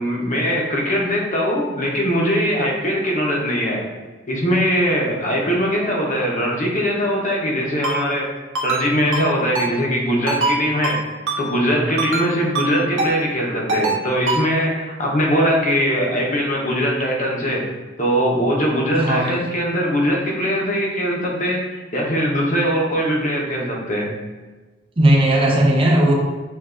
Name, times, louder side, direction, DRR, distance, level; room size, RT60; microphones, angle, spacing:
voice 1, 0.0-3.9 4.3-8.3 8.6-11.0 11.4-17.6 18.0-24.1, equal, 40° left, -2 dB, 1.0 m, -21 dB
Ringtone, 7.8-8.0 8.5-8.8 9.1-9.3 9.5-9.7 10.3-10.5 10.8-11.0 11.3-11.4 12.0-12.2 12.5-12.7 13.0-13.1 13.7-14.0 14.3-14.4, right 3 dB, 85° right, 0.9 m, -22 dB
voice 2, 18.9-19.4 25.0-26.1, right 1 dB, 30° right, -2 dB, 0.8 m, -16 dB
7.1 x 2.6 x 2.5 m, 1.2 s
head